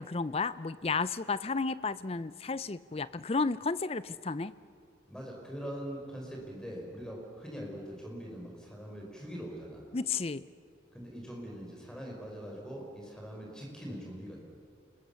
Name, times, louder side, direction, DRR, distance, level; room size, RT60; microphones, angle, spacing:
voice 1, 0.0-4.5 9.9-10.5, left 4 dB, 35° left, 16 dB, 0.5 m, -32 dB
voice 2, 5.1-9.8 10.9-14.4, equal, 5° left, -1 dB, 5.1 m, -42 dB
29.5 x 21.0 x 7.0 m, 2.4 s
head